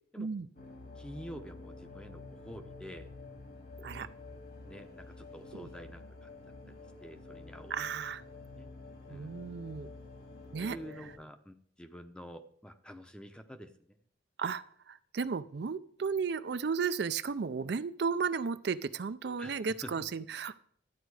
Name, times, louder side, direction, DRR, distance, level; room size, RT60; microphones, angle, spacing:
sound 1, 0.5-11.2, left 3 dB, 55° left, 2.1 m, -49 dB
voice 1, 1.0-3.1 3.8-4.1 4.6-6.3 7.0-7.8 8.6-8.7 9.1-9.3 10.6-13.7 19.4-19.9, equal, 5° left, 8 dB, 0.7 m, -48 dB
voice 2, 7.7-8.2 9.1-9.9 10.5-10.8 14.4-20.5, right 5 dB, 60° right, 13 dB, 0.4 m, -34 dB
12.5 x 9.2 x 4.8 m, 0.63 s
head